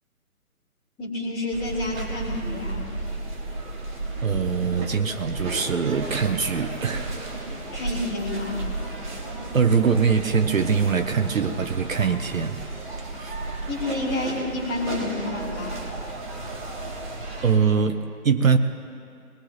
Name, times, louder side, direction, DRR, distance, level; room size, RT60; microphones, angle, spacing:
voice 1, 1.0-2.9 7.7-8.6 13.7-15.8, left 2 dB, 10° left, -5 dB, 2.1 m, -29 dB
sound 1, 1.5-17.6, right 2 dB, 30° right, 2.7 m, -33 dB
voice 2, 4.2-7.1 9.5-12.6 13.2-13.4 16.5-17.0 17.4-18.6, right 6 dB, 65° right, 9 dB, 0.9 m, -23 dB
22.5 x 20.0 x 3.0 m, 2.4 s
figure-of-eight pair, 145°, 44 cm